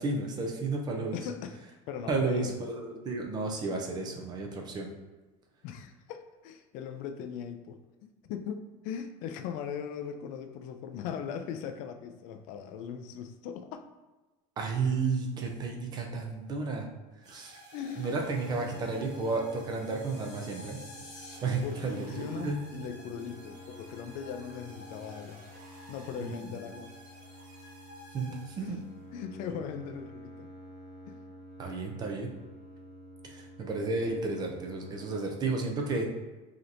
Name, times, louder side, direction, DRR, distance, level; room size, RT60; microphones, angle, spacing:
voice 1, 0.0-1.2 2.1-4.9 14.6-16.9 17.3-17.6 18.0-20.8 21.4-22.1 22.3-22.6 26.2-26.3 28.1-28.8 31.6-32.3 33.2-36.1, right 3 dB, 25° right, 2 dB, 0.5 m, -32 dB
voice 2, 1.1-1.6 1.9-2.7 5.6-13.8 17.7-18.2 18.6-18.9 21.6-25.4 25.9-26.9 28.6-28.8 29.1-30.1 30.4-30.5 31.1-31.2, left 7 dB, 55° left, 6 dB, 0.4 m, -39 dB
sound 1, 17.2-29.0, equal, 50° right, 1.4 m, -52 dB
sound 2, 18.1-35.1, equal, ahead, 1.4 m, -50 dB
sound 3, 19.6-21.4, left 3 dB, 25° left, 1.0 m, -51 dB
4.9 x 2.9 x 2.6 m, 1.2 s
cardioid pair, 170°, 16 cm